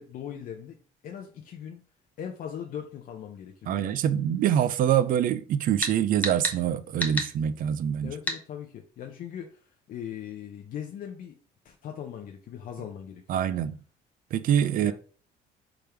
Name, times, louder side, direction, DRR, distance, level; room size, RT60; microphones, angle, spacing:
voice 1, 0.0-1.9 2.2-4.0 8.0-11.4 11.6-13.4 14.8-14.9, left 9 dB, 55° left, 0.6 m, -40 dB
voice 2, 3.7-8.1 13.3-13.8 14.3-14.9, right 10 dB, 55° right, 0.4 m, -25 dB
sound 1, 5.8-5.9 6.2-6.6 7.0-7.3 8.3-8.4, left 1 dB, 10° left, 0.8 m, -29 dB
3.5 x 3.4 x 4.4 m
cardioid pair, 110°, 17 cm